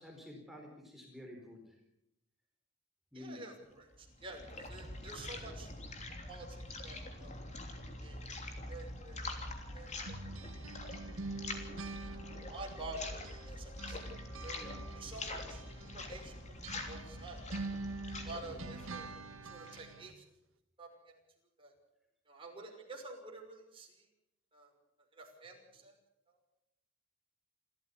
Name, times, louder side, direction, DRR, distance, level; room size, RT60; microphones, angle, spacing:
voice 1, 0.0-1.8 3.1-3.6 4.5-4.7 14.5-15.5 18.4-18.8, left 1 dB, ahead, 1 dB, 4.3 m, -52 dB
voice 2, 3.1-5.7 6.3-7.4 8.0-8.2 8.7-9.2 9.7-9.9 12.5-13.2 13.5-14.0 14.4-14.6 15.0-15.6 15.9-17.4 18.2-19.1 19.5-20.2 20.8-20.9 21.6-21.7 22.3-23.9 24.5-24.7 25.2-25.9, right 2 dB, 25° right, 1 dB, 5.9 m, -48 dB
sound 1, 3.9-19.9, left 2 dB, 35° left, 3.2 m, -45 dB
sound 2, 10.0-13.5 13.8-20.2, right 3 dB, 85° right, 1.5 m, -46 dB
27.5 x 14.0 x 7.0 m, 0.82 s
head